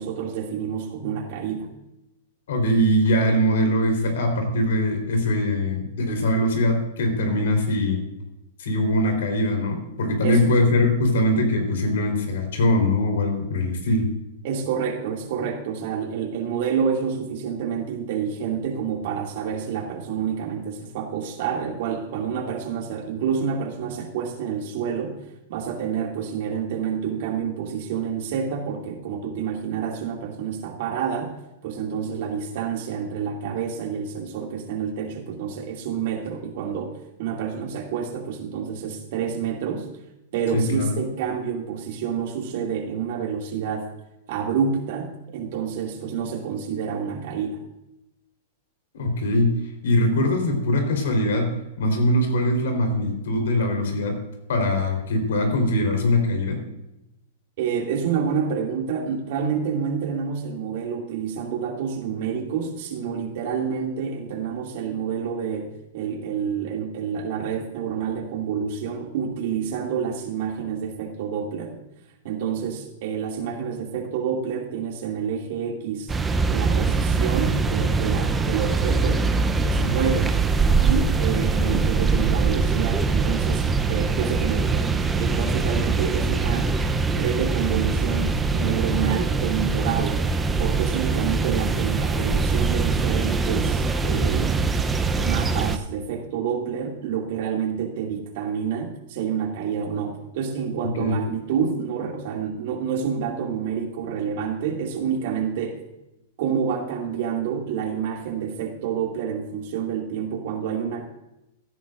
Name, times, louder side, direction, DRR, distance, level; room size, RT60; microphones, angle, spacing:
voice 1, 0.0-1.7 10.2-10.4 14.4-25.2 25.5-39.9 40.3-43.9 44.3-47.6 57.6-71.8 72.2-76.1 76.5-79.3 79.6-80.3 80.8-86.7 87.1-90.2 90.6-94.6 95.2-105.8 106.4-111.1, right 7 dB, 55° right, 2 dB, 2.5 m, -28 dB
voice 2, 2.5-8.0 8.6-14.1 40.5-40.9 48.9-49.5 49.8-51.5 51.8-54.2 54.5-56.6 101.0-101.2, left 1 dB, 80° left, 4 dB, 3.9 m, -22 dB
sound 1, 76.1-95.8, right 4 dB, 10° right, 0.7 m, -23 dB
16.5 x 10.0 x 2.6 m, 0.92 s
supercardioid pair, 150°, 0 cm